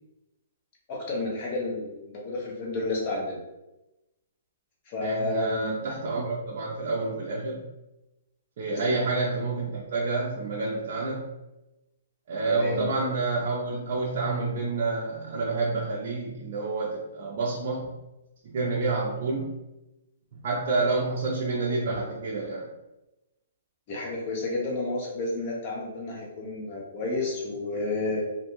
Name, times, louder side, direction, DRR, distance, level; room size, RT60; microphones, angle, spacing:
voice 1, 0.9-3.4 4.9-5.9 8.7-9.1 12.5-12.9 23.9-28.2, left 2 dB, 30° left, -2 dB, 0.7 m, -31 dB
voice 2, 5.0-7.6 8.6-11.3 12.3-17.9 18.4-19.5 20.4-22.7, right 3 dB, 45° right, -5 dB, 0.5 m, -28 dB
2.5 x 2.2 x 2.9 m, 0.97 s
hypercardioid pair, 165°, 0 cm